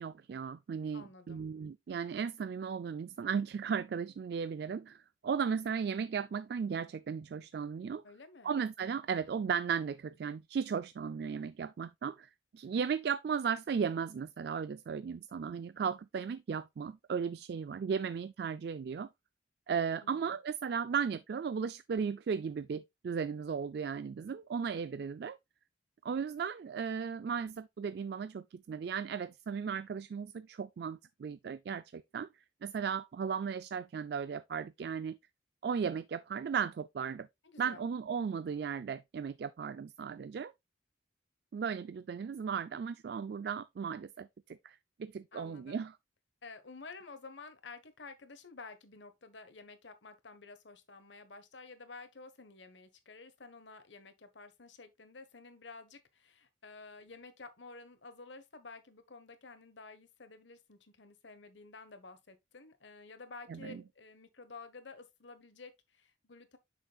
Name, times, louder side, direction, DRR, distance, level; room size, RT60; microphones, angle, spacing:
voice 1, 0.0-8.0 8.4-19.1 19.7-25.4 26.0-32.3 32.6-35.2 35.6-37.3 37.6-40.5 41.5-45.9 63.5-63.8, right 6 dB, 55° right, 0.3 m, -36 dB
voice 2, 0.9-1.4 8.0-8.6 20.0-20.4 37.4-37.9 45.3-45.8 46.4-66.6, left 3 dB, 75° left, 1.2 m, -51 dB
7.8 x 6.2 x 2.3 m
head